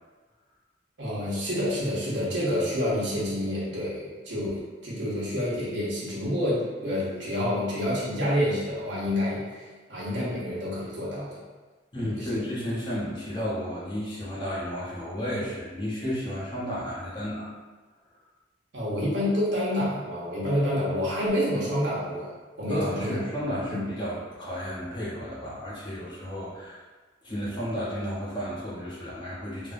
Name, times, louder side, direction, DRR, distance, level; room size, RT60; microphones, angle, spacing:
voice 1, 1.0-11.4 12.0-12.4 18.7-22.3 22.6-23.2 23.7-23.8, left 1 dB, 65° right, -7 dB, 1.0 m, -28 dB
voice 2, 11.9-17.5 22.7-26.8 27.2-29.7, equal, 25° left, -8 dB, 0.8 m, -33 dB
3.4 x 2.1 x 2.5 m, 1.3 s
head